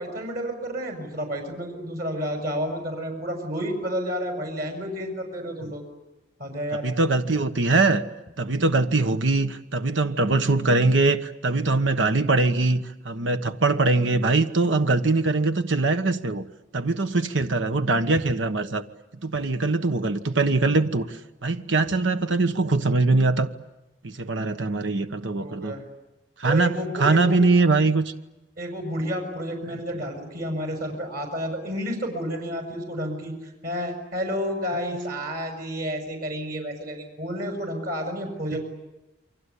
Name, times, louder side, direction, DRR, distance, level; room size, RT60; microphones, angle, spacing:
voice 1, 0.0-5.8 6.4-6.9 25.4-25.8 26.4-27.5 28.6-38.6, equal, 55° right, 4 dB, 6.3 m, -30 dB
voice 2, 6.8-8.0 8.4-16.4 16.7-18.8 19.2-23.5 24.0-25.7 26.4-26.7 27.0-28.1, right 3 dB, 80° right, 9 dB, 1.3 m, -22 dB
29.0 x 24.0 x 8.4 m, 1.0 s
head